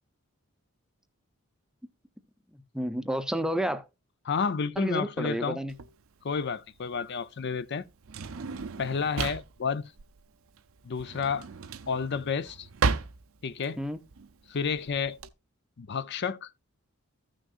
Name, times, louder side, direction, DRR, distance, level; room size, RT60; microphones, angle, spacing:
voice 1, 2.5-3.9 4.8-5.7 13.8-14.0, equal, 5° right, 0.6 m, -31 dB
voice 2, 4.3-5.6 6.2-7.9 8.8-9.8 10.8-11.5 11.9-12.7 13.4-13.8 14.5-15.2 15.8-16.5, left 5 dB, 50° left, 0.5 m, -30 dB
Drawer open or close, 5.7-15.3, right 4 dB, 70° right, 0.6 m, -35 dB
15.0 x 6.3 x 2.4 m
head